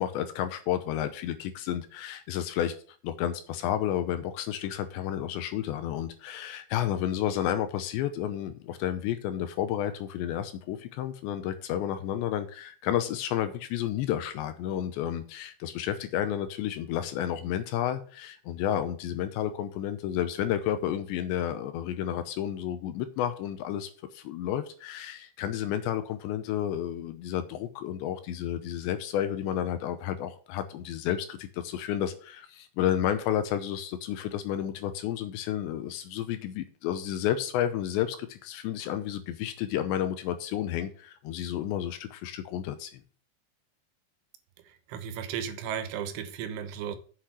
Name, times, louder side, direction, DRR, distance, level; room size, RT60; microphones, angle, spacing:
voice 1, 0.0-2.7 3.0-43.0, left 11 dB, 80° left, 2.7 m, -31 dB
voice 2, 44.7-47.0, right 8 dB, 75° right, 3.4 m, -35 dB
7.9 x 6.6 x 5.8 m
omnidirectional pair, 5.8 m